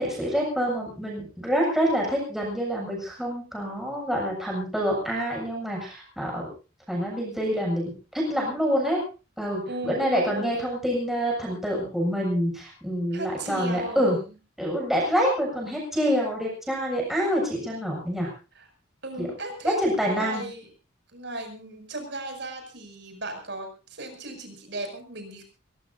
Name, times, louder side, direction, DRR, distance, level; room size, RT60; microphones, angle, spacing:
voice 1, 0.0-6.5 6.9-9.0 9.4-14.2 14.6-18.3 19.2-19.3 19.6-20.5, equal, ahead, -3 dB, 7.4 m, -26 dB
voice 2, 9.7-10.5 13.1-14.3 18.6-18.7 19.0-19.8 20.0-20.7 21.1-25.4, right 1 dB, 60° right, 5 dB, 7.0 m, -36 dB
22.5 x 21.0 x 2.8 m, 0.34 s
head